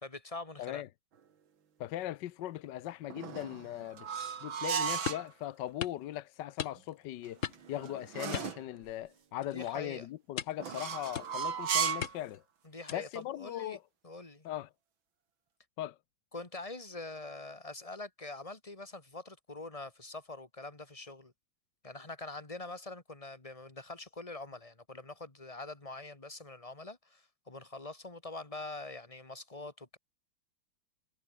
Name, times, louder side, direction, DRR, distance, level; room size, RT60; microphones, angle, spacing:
voice 1, 0.0-0.8 9.4-10.1 12.6-13.8 14.0-14.5 16.3-21.3 21.8-30.0, left 2 dB, 15° left, 2.4 m, -44 dB
voice 2, 1.8-4.1 4.4-7.4 7.7-12.4 12.9-13.8 14.4-14.7 15.8-16.0, left 13 dB, 70° left, 1.3 m, -39 dB
sound 1, 3.1-5.3 7.3-8.7 10.6-12.2, right 7 dB, 75° right, 2.8 m, -35 dB
sound 2, 5.1-5.3 5.8-6.0 6.6-7.0 7.4-7.8 8.3-9.1 9.4-9.7 10.4-10.7 11.1-11.5 12.0-12.4 12.9-13.2, left 8 dB, 45° left, 1.2 m, -39 dB
omnidirectional pair, 2.2 m